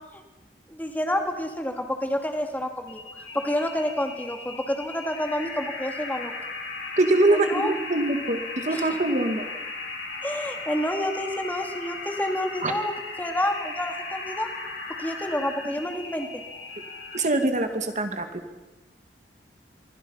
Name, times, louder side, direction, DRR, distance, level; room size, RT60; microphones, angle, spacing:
voice 1, 0.7-3.0 3.3-6.3 7.3-7.8 8.7-8.9 10.2-14.5 15.0-16.4, left 1 dB, 10° left, 4 dB, 2.5 m, -29 dB
sound 1, 2.9-17.5, left 3 dB, 75° left, 7.4 m, -37 dB
voice 2, 7.0-9.5 12.6-12.7 17.1-18.4, right 2 dB, 45° right, 6 dB, 1.8 m, -23 dB
26.5 x 24.0 x 5.6 m, 1.1 s
head